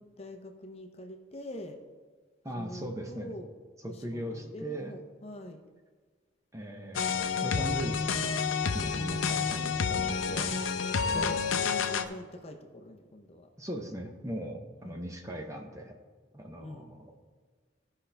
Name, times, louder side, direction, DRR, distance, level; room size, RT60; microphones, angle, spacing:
voice 1, 0.0-1.8 2.5-3.5 3.8-5.6 11.1-13.5 14.8-15.0 16.6-16.9, left 1 dB, 30° left, 4 dB, 0.6 m, -44 dB
voice 2, 2.4-3.3 3.8-4.9 6.5-8.5 8.7-10.6 11.1-11.3 13.6-16.0 16.3-17.1, right 1 dB, 15° right, 3 dB, 0.8 m, -39 dB
sound 1, 6.9-12.0, left 5 dB, 90° left, 0.6 m, -29 dB
15.0 x 5.7 x 3.3 m, 1.5 s
head